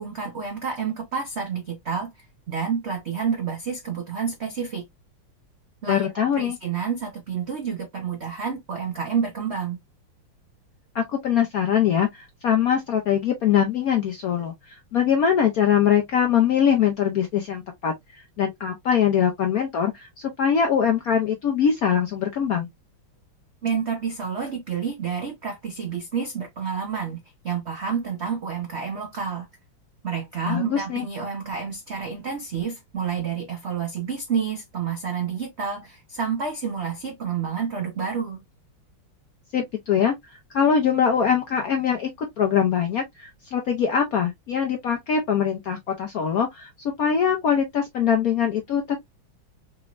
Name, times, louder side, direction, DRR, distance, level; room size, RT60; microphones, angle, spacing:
voice 1, 0.0-4.8 5.8-9.8 23.6-29.5 30.0-38.4, right 6 dB, 75° right, 0.6 m, -29 dB
voice 2, 5.9-6.6 10.9-22.7 30.5-31.1 39.5-40.1 40.5-46.7 47.0-49.0, left 8 dB, 70° left, 0.8 m, -22 dB
4.3 x 3.0 x 2.3 m
omnidirectional pair, 2.3 m